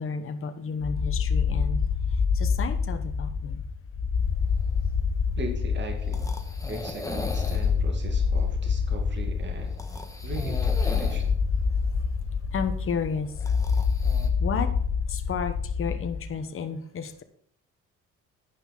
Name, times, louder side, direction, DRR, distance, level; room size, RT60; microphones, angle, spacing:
voice 1, 0.0-1.8 2.3-3.6 12.5-13.3 14.4-14.7 15.1-17.2, left 5 dB, 45° left, 7 dB, 1.1 m, -32 dB
sound 1, 0.8-16.4, left 5 dB, 65° left, 1.4 m, -27 dB
sound 2, 4.2-14.3, left 2 dB, 10° left, 1.5 m, -41 dB
voice 2, 5.4-6.2 6.7-9.7 10.2-11.3, right 3 dB, 35° right, 3 dB, 2.0 m, -39 dB
9.5 x 5.7 x 5.7 m, 0.65 s
cardioid pair, 90°, 30 cm